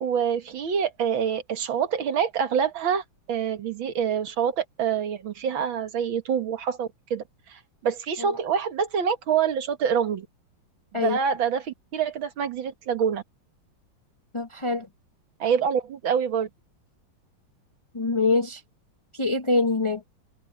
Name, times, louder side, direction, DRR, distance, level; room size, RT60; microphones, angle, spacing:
voice 1, 0.0-7.2 7.5-10.3 10.9-13.2 15.4-16.5, right 7 dB, 90° right, 2.3 m, -26 dB
voice 2, 14.3-14.9 17.9-18.6 19.1-20.0, left 3 dB, 25° left, 0.7 m, -24 dB
omnidirectional pair, 2.1 m